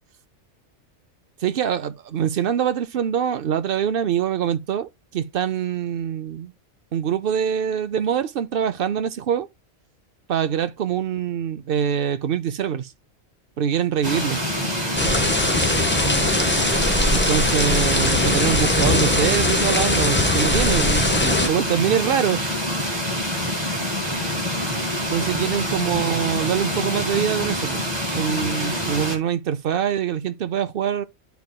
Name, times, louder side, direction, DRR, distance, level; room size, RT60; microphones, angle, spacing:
voice 1, 1.4-6.5 6.9-9.5 10.3-12.9 13.6-14.4 17.1-22.4 25.1-27.8 28.1-31.0, right 9 dB, 60° right, 0.6 m, -24 dB
sound 1, 14.0-29.2, equal, 20° right, 2.0 m, -26 dB
sound 2, 15.0-21.5, left 1 dB, 15° left, 0.4 m, -21 dB
12.0 x 4.7 x 2.2 m
omnidirectional pair, 1.4 m